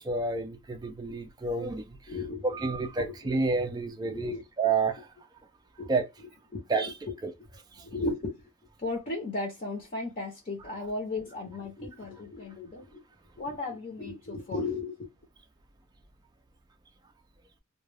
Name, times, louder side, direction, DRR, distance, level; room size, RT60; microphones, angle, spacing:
voice 1, 0.0-2.1 2.4-5.1 5.9-6.1 6.7-6.9 7.2-7.3 7.7-7.8, right 4 dB, 20° right, 0.3 m, -30 dB
voice 2, 2.1-2.6 3.1-3.4 4.0-4.4 5.8-6.0 6.5-6.9 7.8-8.4 8.8-13.0 13.4-15.1, left 2 dB, 40° left, 0.7 m, -35 dB
2.2 x 2.2 x 3.2 m
head